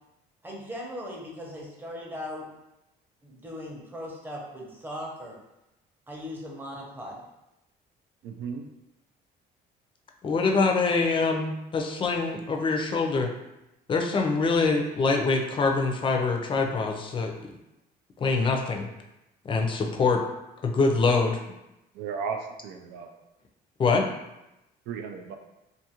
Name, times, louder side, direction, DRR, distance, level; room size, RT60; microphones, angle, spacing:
voice 1, 0.4-2.5 3.2-5.4 6.1-7.2, equal, 10° right, -2 dB, 0.7 m, -38 dB
voice 2, 8.2-8.7 21.9-23.2 24.9-25.4, right 6 dB, 85° right, 4 dB, 0.4 m, -35 dB
voice 3, 10.2-13.3 13.9-17.3 18.2-18.9 19.4-20.2 20.6-21.4 23.8-24.0, left 4 dB, 30° left, 2 dB, 0.4 m, -24 dB
2.6 x 2.4 x 2.8 m, 0.91 s
cardioid pair, 110°, 17 cm